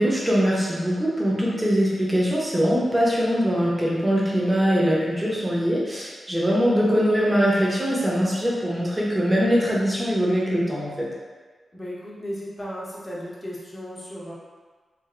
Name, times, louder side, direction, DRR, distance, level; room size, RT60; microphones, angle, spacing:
voice 1, 0.0-11.1, equal, 10° right, -5 dB, 0.8 m, -22 dB
voice 2, 11.7-14.3, equal, 15° left, -6 dB, 0.8 m, -35 dB
3.2 x 2.6 x 3.6 m, 1.4 s
wide cardioid pair, 145°, 0 cm